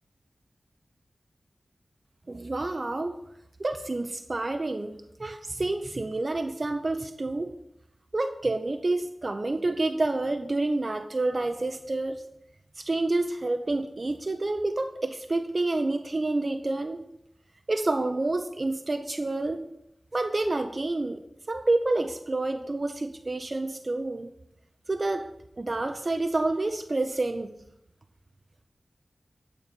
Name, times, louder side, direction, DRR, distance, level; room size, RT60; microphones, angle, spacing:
voice 1, 2.3-3.2 3.6-7.6 8.1-12.2 12.8-17.1 17.7-19.6 20.1-21.2 21.5-24.3 24.9-25.3 25.6-27.5, right 2 dB, 50° right, 6 dB, 0.6 m, -28 dB
8.9 x 4.1 x 6.7 m, 0.79 s
wide cardioid pair, 55°, 0 cm